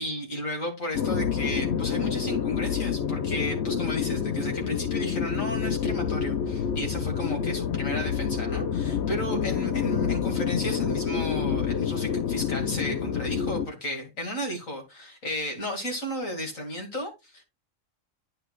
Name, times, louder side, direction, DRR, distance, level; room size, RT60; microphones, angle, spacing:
voice 1, 0.0-17.4, equal, 90° left, 2.8 m, -34 dB
sound 1, 0.9-13.7, left 7 dB, 60° left, 1.0 m, -28 dB
11.5 x 5.4 x 2.4 m
omnidirectional pair, 1.3 m